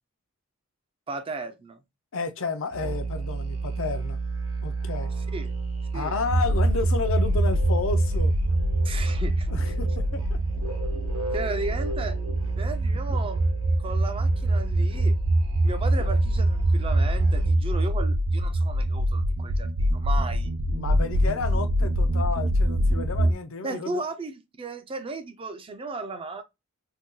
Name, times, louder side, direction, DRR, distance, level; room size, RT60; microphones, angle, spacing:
voice 1, 1.1-1.8 5.3-5.5 5.8-6.1 8.8-9.5 11.3-12.2 12.6-13.4 13.8-15.1 15.6-20.5 23.6-26.4, right 3 dB, 25° right, 0.4 m, -35 dB
voice 2, 2.1-4.2 4.6-5.1 5.9-8.3 9.5-10.4 13.1-13.2 16.0-16.2 20.7-24.0, left 4 dB, 60° left, 0.5 m, -31 dB
Musical instrument, 2.7-17.7, right 4 dB, 75° right, 0.8 m, -31 dB
sound 1, 6.3-23.3, right 1 dB, 90° right, 0.5 m, -24 dB
2.7 x 2.3 x 3.6 m
head